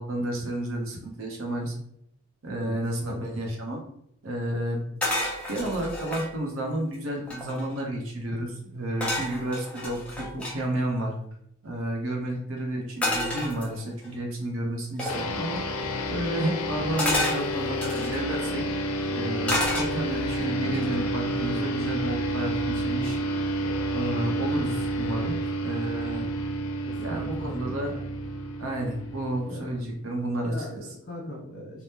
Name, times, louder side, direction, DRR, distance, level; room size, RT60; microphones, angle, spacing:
voice 1, 0.0-1.7 2.4-3.8 4.2-4.8 5.5-11.1 11.6-15.6 16.1-18.7 19.1-23.2 23.6-26.3 27.0-27.9 28.6-30.9, right 1 dB, 70° right, 1 dB, 0.7 m, -31 dB
sound 1, 5.0-6.3 6.9-7.0 7.2-7.8 9.0-10.6 13.0-14.1 15.0-15.3 17.0-18.2 19.5-20.3 20.7-21.1, left 1 dB, 5° left, 0.5 m, -30 dB
sound 2, 15.1-29.9, right 1 dB, 80° left, 0.4 m, -30 dB
voice 2, 26.8-27.8 29.5-29.6 30.4-31.8, equal, 50° left, -8 dB, 1.1 m, -40 dB
3.5 x 2.1 x 2.7 m, 0.71 s
head